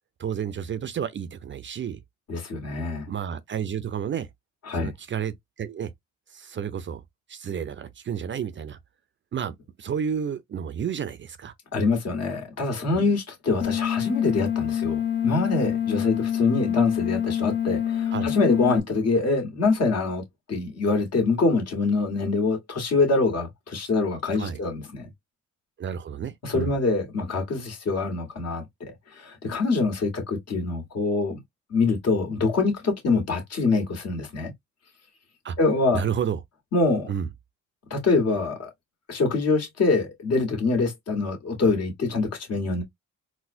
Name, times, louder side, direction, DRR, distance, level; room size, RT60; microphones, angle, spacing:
voice 1, 0.2-2.0 3.1-4.3 4.8-5.9 6.3-7.0 7.3-8.8 9.3-11.5 18.1-18.3 24.3-24.6 25.8-26.8 35.4-35.6 35.9-36.4 37.1-37.3, right 8 dB, 40° right, 0.5 m, -31 dB
voice 2, 2.3-3.1 4.7-4.9 11.7-25.1 26.4-28.6 29.1-31.4 31.7-34.5 35.6-36.0 36.7-37.1 37.9-38.7 39.1-42.8, left 3 dB, 55° left, 1.6 m, -25 dB
sound 1, 13.6-18.8, left 10 dB, 35° left, 0.8 m, -26 dB
4.0 x 2.2 x 2.6 m
cardioid pair, 90°, 30 cm